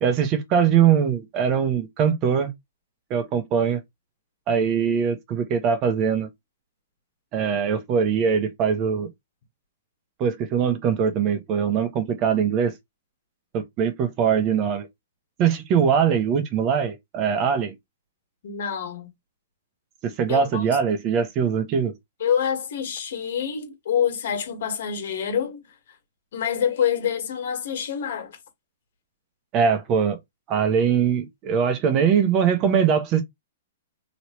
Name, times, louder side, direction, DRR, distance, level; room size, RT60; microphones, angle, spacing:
voice 1, 0.0-2.5 3.1-3.8 4.5-6.3 7.3-9.1 10.2-12.8 13.5-14.9 15.4-17.7 20.0-21.9 29.5-30.2 30.5-33.2, right 7 dB, 30° right, 0.8 m, -22 dB
voice 2, 18.4-19.1 20.3-20.6 22.2-25.6 26.3-28.4, left 8 dB, 65° left, 1.6 m, -26 dB
3.0 x 2.9 x 3.0 m
hypercardioid pair, 150°, 0 cm